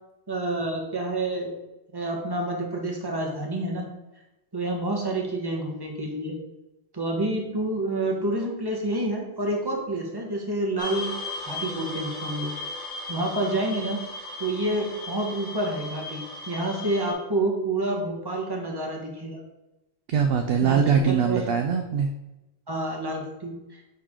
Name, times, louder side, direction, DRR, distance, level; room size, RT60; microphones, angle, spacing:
voice 1, 0.3-1.5 1.9-3.9 4.5-6.4 6.9-11.2 11.4-12.5 13.1-14.0 14.4-19.4 20.6-21.5 22.7-23.8, right 1 dB, 20° right, 0 dB, 1.2 m, -28 dB
sound 1, 10.8-17.1, left 2 dB, 90° left, 2.3 m, -36 dB
voice 2, 20.1-22.1, right 6 dB, 60° right, 5 dB, 0.7 m, -22 dB
9.5 x 3.5 x 3.7 m, 0.96 s
omnidirectional pair, 1.3 m